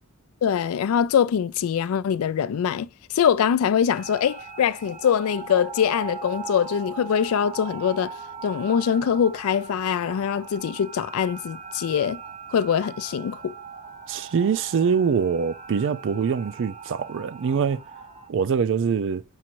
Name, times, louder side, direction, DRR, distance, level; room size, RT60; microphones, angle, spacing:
voice 1, 0.4-8.1 8.4-12.2 12.5-13.5, left 8 dB, 70° left, 0.3 m, -23 dB
sound 1, 3.9-18.3, right 5 dB, 30° right, 0.7 m, -40 dB
voice 2, 14.1-17.8 18.3-19.2, right 6 dB, 60° right, 0.4 m, -24 dB
5.6 x 2.5 x 2.9 m
head